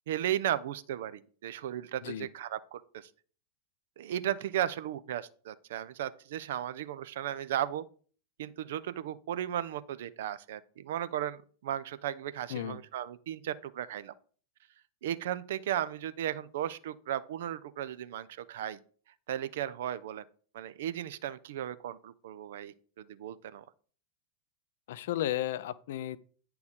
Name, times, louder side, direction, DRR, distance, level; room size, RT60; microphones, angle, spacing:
voice 1, 0.1-3.1 4.0-7.8 8.4-14.1 15.0-18.8 19.3-20.2 20.5-23.6, right 11 dB, 55° right, 0.5 m, -35 dB
voice 2, 12.5-12.8 24.9-26.2, left 12 dB, 55° left, 0.5 m, -34 dB
9.2 x 4.7 x 5.1 m
figure-of-eight pair, 90°, 0 cm